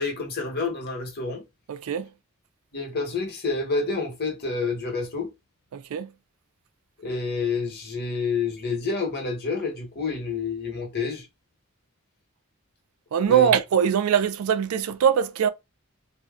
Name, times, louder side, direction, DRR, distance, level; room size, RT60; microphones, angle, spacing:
voice 1, 0.0-1.4 2.7-5.3 7.0-11.2 13.2-13.5, left 4 dB, 50° left, 1.1 m, -28 dB
voice 2, 1.7-2.1 5.7-6.1 13.1-15.5, right 8 dB, 90° right, 0.4 m, -22 dB
2.7 x 2.0 x 3.5 m
head